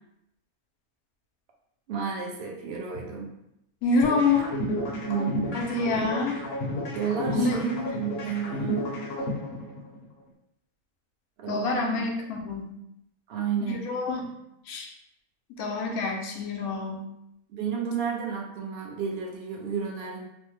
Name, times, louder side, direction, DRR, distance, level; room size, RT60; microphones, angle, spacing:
voice 1, 1.9-3.3 5.1-5.6 6.9-9.1 11.4-12.1 13.3-13.9 17.5-20.3, right 6 dB, 65° right, 0 dB, 0.6 m, -32 dB
voice 2, 3.8-4.5 5.5-6.4 7.4-7.8 11.5-12.7 13.6-14.3 14.7-14.9 15.6-17.1, left 3 dB, 85° left, 2 dB, 1.1 m, -27 dB
sound 1, 4.0-10.0, equal, 55° left, 0.8 m, -31 dB
3.1 x 2.1 x 3.0 m, 0.81 s
omnidirectional pair, 1.5 m